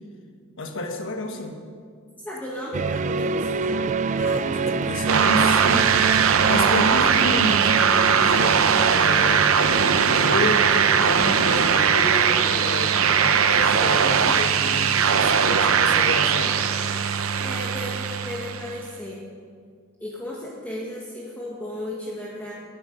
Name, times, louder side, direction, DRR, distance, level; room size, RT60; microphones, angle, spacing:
voice 1, 0.6-1.6 4.1-9.6 10.0-16.6, left 2 dB, 65° left, 4 dB, 1.4 m, -30 dB
voice 2, 2.2-3.9 17.4-19.3 20.0-22.5, left 1 dB, 10° left, -5 dB, 1.3 m, -34 dB
sound 1, 2.7-14.1, right 4 dB, 35° right, 0.3 m, -28 dB
sound 2, 5.1-18.8, right 7 dB, 70° right, 0.7 m, -20 dB
18.5 x 8.3 x 5.1 m, 2.1 s
head